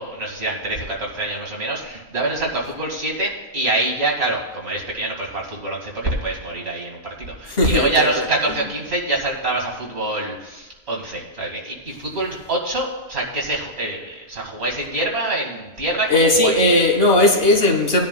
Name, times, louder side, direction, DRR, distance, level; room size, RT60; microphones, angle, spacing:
voice 1, 0.0-16.6, right 2 dB, 75° right, 2.3 m, -25 dB
voice 2, 7.5-8.2 16.1-18.0, left 1 dB, 60° left, 1.6 m, -17 dB
18.5 x 10.0 x 2.2 m
omnidirectional pair, 1.1 m